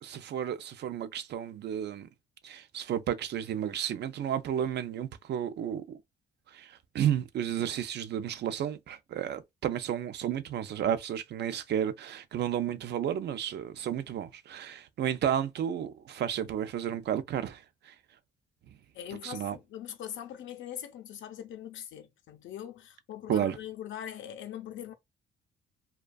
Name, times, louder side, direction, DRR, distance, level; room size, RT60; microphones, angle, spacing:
voice 1, 0.0-2.1 2.4-6.0 6.5-17.9 19.2-19.6 23.3-23.6, right 9 dB, 60° right, 0.4 m, -32 dB
voice 2, 18.9-24.9, left 10 dB, 75° left, 0.6 m, -42 dB
2.5 x 2.2 x 2.2 m
cardioid pair, 90°, 20 cm